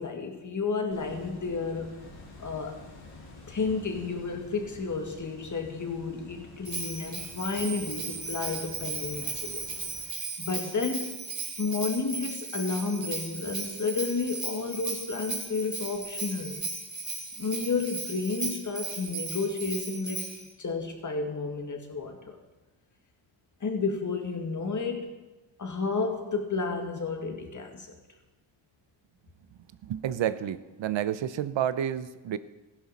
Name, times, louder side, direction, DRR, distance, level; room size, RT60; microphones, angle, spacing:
voice 1, 0.0-2.0 2.4-2.7 3.5-9.7 10.4-11.1 11.6-16.6 17.4-20.2 20.6-22.4 23.6-25.1 25.6-27.9, left 4 dB, 40° left, 4 dB, 2.0 m, -31 dB
sound 1, 0.9-10.0, left 3 dB, 85° left, 4.2 m, -49 dB
Bell, 6.6-20.5, right 3 dB, 40° right, 3.3 m, -36 dB
voice 2, 29.8-32.4, right 10 dB, 75° right, 14 dB, 0.7 m, -30 dB
15.0 x 11.0 x 4.2 m, 1.1 s
cardioid pair, 95°, 46 cm